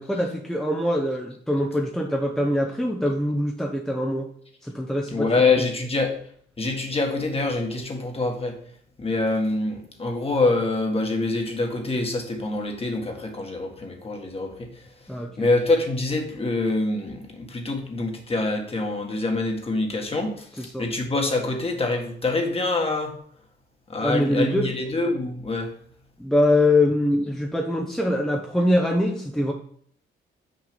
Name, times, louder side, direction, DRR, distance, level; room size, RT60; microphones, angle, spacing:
voice 1, 0.0-4.3 4.6-5.3 15.1-15.5 20.6-20.9 24.0-24.7 26.2-29.5, left 1 dB, 5° left, 1 dB, 0.9 m, -23 dB
voice 2, 5.1-6.1 6.6-8.6 9.0-14.7 15.4-23.2 23.9-25.7, left 2 dB, 30° left, 3 dB, 1.7 m, -25 dB
6.3 x 4.8 x 5.2 m, 0.63 s
cardioid pair, 90°, 20 cm